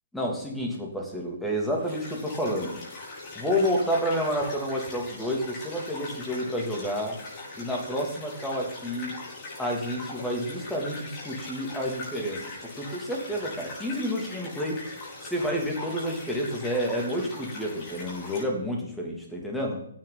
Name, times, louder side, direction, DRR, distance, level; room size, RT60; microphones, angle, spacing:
voice 1, 0.1-2.8 3.3-7.2 7.6-9.1 9.6-12.4 12.8-14.8 15.2-19.8, equal, 5° left, -1 dB, 3.0 m, -29 dB
sound 1, 1.7-18.4, left 2 dB, 30° left, 6.4 m, -40 dB
16.5 x 9.8 x 4.3 m, 0.70 s
figure-of-eight pair, 130°, 0 cm